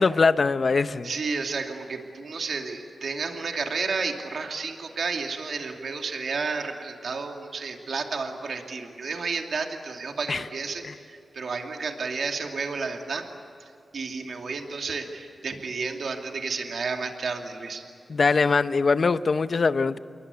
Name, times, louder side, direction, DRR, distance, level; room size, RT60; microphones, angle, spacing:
voice 1, 0.0-1.1 10.3-10.4 10.9-11.0 18.1-20.0, left 4 dB, 50° left, 12 dB, 0.8 m, -22 dB
voice 2, 1.0-13.2 13.6-17.8, right 4 dB, 65° right, 3 dB, 2.7 m, -31 dB
28.0 x 22.5 x 8.3 m, 2.7 s
wide cardioid pair, 110°, 0 cm